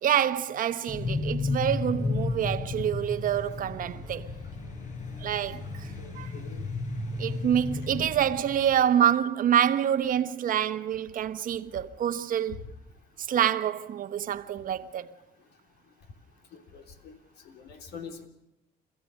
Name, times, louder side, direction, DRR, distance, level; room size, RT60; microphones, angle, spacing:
voice 1, 0.0-4.3 5.2-5.9 6.2-6.3 7.2-12.6 13.2-15.1, right 10 dB, 55° right, 1.1 m, -27 dB
sound 1, 0.9-8.8, left 3 dB, 45° left, 5.4 m, -33 dB
voice 2, 6.0-6.7 16.5-17.2 17.4-18.3, left 6 dB, 70° left, 3.5 m, -45 dB
28.5 x 15.0 x 6.5 m
cardioid pair, 110°, 17 cm